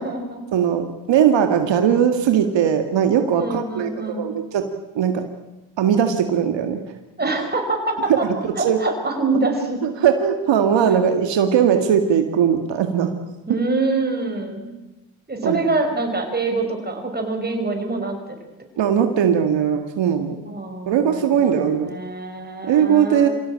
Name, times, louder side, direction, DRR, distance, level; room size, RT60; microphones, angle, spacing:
voice 1, 0.0-0.4 3.4-4.3 7.2-8.3 8.5-9.8 10.9-11.0 13.5-14.7 15.3-18.2 20.5-23.3, right 3 dB, 20° right, 3 dB, 5.6 m, -25 dB
voice 2, 0.5-4.7 5.0-5.2 5.8-6.8 8.4-8.8 9.8-13.1 15.4-15.6 18.8-20.4 20.9-21.9 22.7-23.3, right 8 dB, 80° right, 6 dB, 2.1 m, -19 dB
26.0 x 16.5 x 8.8 m, 1.0 s
cardioid pair, 85°, 43 cm